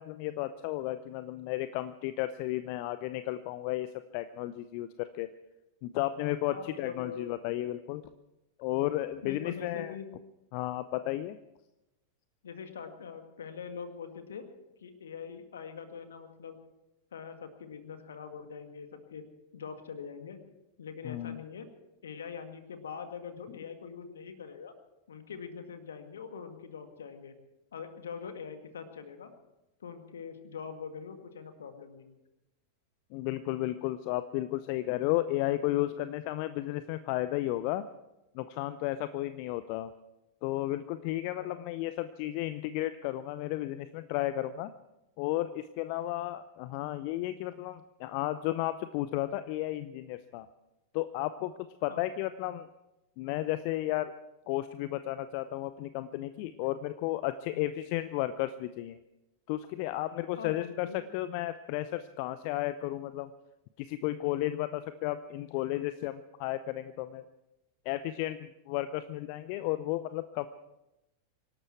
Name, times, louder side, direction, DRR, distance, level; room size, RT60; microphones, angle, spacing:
voice 1, 0.0-5.3 5.8-8.0 8.6-9.9 10.5-11.4 21.0-21.4 33.1-37.8 38.3-39.9 40.4-44.7 45.2-50.5 50.9-51.5 51.8-52.7 53.2-54.1 54.5-59.0 59.5-63.3 63.8-67.2 67.9-70.5, left 15 dB, 45° left, 13 dB, 0.6 m, -33 dB
voice 2, 6.5-7.3 9.2-10.1 12.4-14.5 14.8-16.6 17.1-19.2 19.5-20.4 20.8-21.7 22.0-24.7 25.1-27.3 27.7-29.3 29.8-32.1 41.4-41.6 51.9-52.0 57.5-57.6 60.4-61.0, left 6 dB, 65° left, 8 dB, 1.9 m, -43 dB
25.0 x 12.0 x 4.6 m, 0.95 s
figure-of-eight pair, 90°, 0 cm